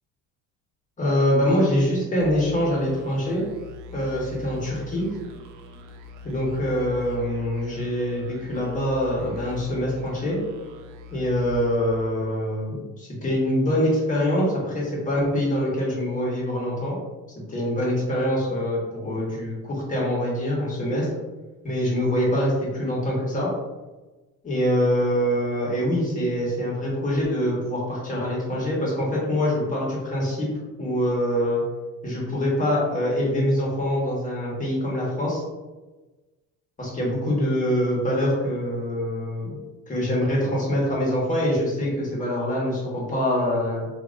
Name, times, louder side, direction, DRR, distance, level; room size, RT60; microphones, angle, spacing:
voice 1, 1.0-3.4 3.9-5.1 6.2-10.4 11.1-17.0 17.5-21.1 21.6-23.5 24.4-30.5 30.8-31.6 32.0-35.4 36.8-39.6 39.9-43.9, equal, 25° left, -4 dB, 1.3 m, -24 dB
sound 1, 2.2-12.5, left 3 dB, 80° right, 0.6 m, -42 dB
3.7 x 2.8 x 2.6 m, 1.2 s
cardioid pair, 120°, 32 cm